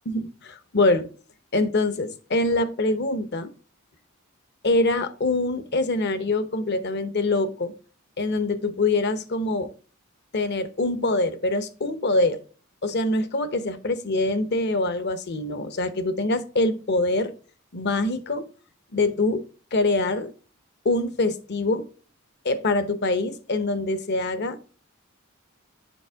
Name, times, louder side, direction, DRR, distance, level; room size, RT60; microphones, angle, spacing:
voice 1, 0.1-1.1 1.5-3.5 4.6-7.7 8.2-9.7 10.3-12.4 12.8-17.3 17.7-18.5 18.9-19.4 19.7-20.3 20.8-21.9 22.4-24.6, left 2 dB, 50° left, 0.8 m, -24 dB
7.1 x 5.1 x 3.5 m
head